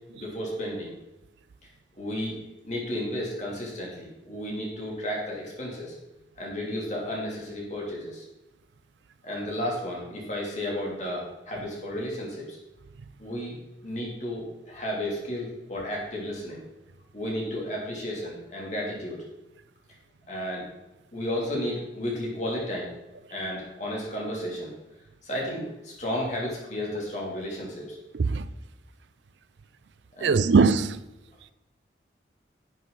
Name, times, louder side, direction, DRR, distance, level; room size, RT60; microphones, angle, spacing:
voice 1, 0.1-0.9 2.0-2.4 2.6-5.9 6.4-8.2 9.2-12.6 13.2-16.6 17.1-19.2 20.3-20.7 21.1-22.9 23.3-24.7 25.2-28.0 30.2-30.4, left 1 dB, 40° left, 3.0 m, -33 dB
voice 2, 28.1-28.5 30.2-31.0, right 4 dB, 80° right, 0.4 m, -21 dB
11.0 x 7.4 x 4.0 m
head